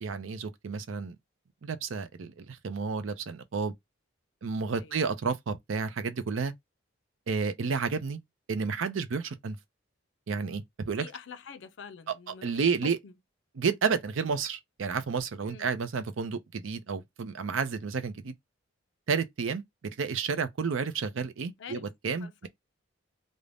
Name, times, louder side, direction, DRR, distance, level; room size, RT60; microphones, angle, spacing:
voice 1, 0.0-1.2 1.6-3.7 4.4-6.5 7.3-8.2 8.5-9.6 10.3-11.1 12.1-13.0 13.5-18.3 19.1-19.6 20.0-22.5, right 5 dB, 75° right, 0.5 m, -31 dB
voice 2, 11.0-13.1 15.5-15.7 21.6-21.9 22.2-22.5, left 6 dB, 65° left, 0.5 m, -46 dB
2.5 x 2.1 x 3.2 m
head